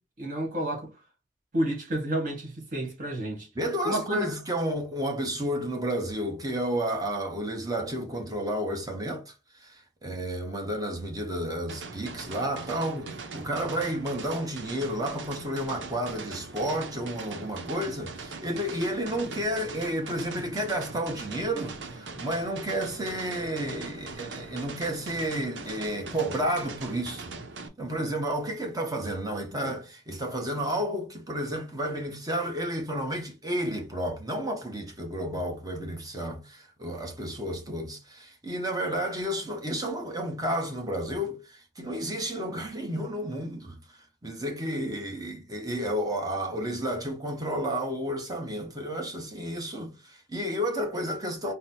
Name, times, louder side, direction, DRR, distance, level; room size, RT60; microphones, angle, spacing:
voice 1, 0.2-0.9 1.5-3.5 3.8-4.3, right 1 dB, 50° right, 1.8 m, -30 dB
voice 2, 3.6-9.3 9.6-9.8 10.0-27.3 27.8-43.8 44.2-51.5, equal, 20° right, 1.0 m, -31 dB
sound 1, 11.7-27.7, right 4 dB, 75° right, 0.7 m, -41 dB
4.0 x 2.0 x 4.0 m
head